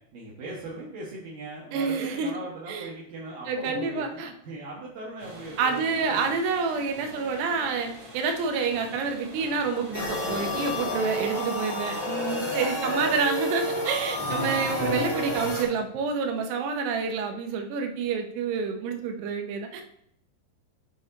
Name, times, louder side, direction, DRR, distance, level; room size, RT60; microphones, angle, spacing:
voice 1, 0.1-6.3 14.2-14.6, right 2 dB, 65° right, -6 dB, 2.9 m, -39 dB
voice 2, 1.7-2.3 2.7-2.9 3.5-4.3 5.6-19.8, right 5 dB, 85° right, 4 dB, 3.1 m, -28 dB
sound 1, 5.2-11.2, equal, 45° right, 3.3 m, -45 dB
sound 2, 9.9-15.6, equal, 25° left, 1.9 m, -29 dB
9.5 x 5.1 x 4.0 m, 0.73 s
omnidirectional pair, 4.7 m